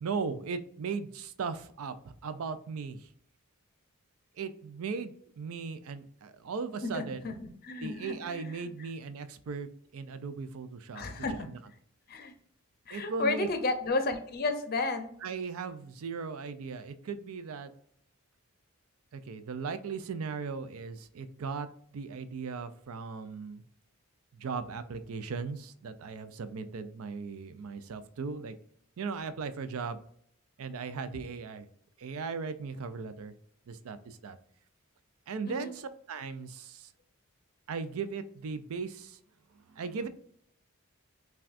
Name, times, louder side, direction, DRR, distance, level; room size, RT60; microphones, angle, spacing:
voice 1, 0.0-3.1 4.4-7.3 7.8-11.0 11.3-11.6 12.9-13.5 15.2-17.7 19.1-21.7 21.9-23.6 24.3-28.6 29.0-30.0 30.6-31.7 32.0-33.3 33.7-34.4 35.3-36.9 37.7-39.2 39.5-40.1, right 5 dB, 70° right, 12 dB, 0.4 m, -38 dB
voice 2, 6.8-8.4 10.9-11.5 12.1-12.3 12.9-15.1 35.5-35.7, left 3 dB, 45° left, 7 dB, 0.6 m, -32 dB
5.7 x 2.3 x 2.5 m, 0.65 s
head